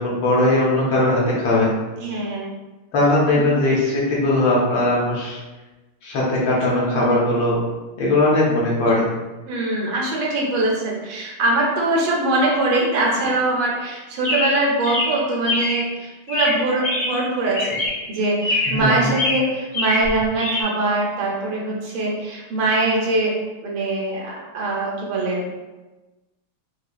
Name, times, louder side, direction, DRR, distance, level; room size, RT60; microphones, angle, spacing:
voice 1, 0.0-1.7 2.9-5.4 6.0-7.6 8.0-9.1 18.7-19.2, left 1 dB, 65° left, -5 dB, 1.4 m, -19 dB
voice 2, 2.0-2.5 3.3-3.5 6.8-7.2 9.4-17.8 18.1-23.3 23.6-25.4, right 2 dB, 75° right, -2 dB, 1.4 m, -22 dB
Chirp tweet, 14.2-15.9 16.3-17.3 17.5-18.1 18.4-18.9 19.1-20.6, left 2 dB, 40° left, 0.7 m, -24 dB
4.9 x 2.2 x 2.3 m, 1.1 s
omnidirectional pair, 2.4 m